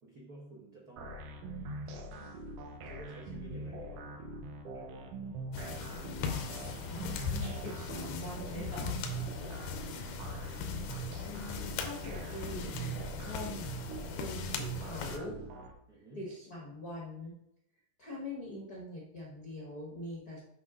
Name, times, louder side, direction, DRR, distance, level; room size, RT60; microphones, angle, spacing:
voice 1, 0.0-1.1 1.8-2.4 2.8-4.0 4.7-5.2 9.3-9.9 15.9-16.3, right 1 dB, 65° right, -4 dB, 0.9 m, -52 dB
sound 1, 1.0-15.7, right 3 dB, 85° right, 1.4 m, -43 dB
sound 2, 5.5-15.2, left 6 dB, 85° left, 2.5 m, -39 dB
voice 2, 6.9-9.0 9.3-9.6 10.0-10.2 11.2-13.8 14.2-15.4 16.1-17.3 18.0-20.4, left 1 dB, 55° left, -4 dB, 1.0 m, -43 dB
7.9 x 5.7 x 3.7 m, 0.79 s
omnidirectional pair, 4.0 m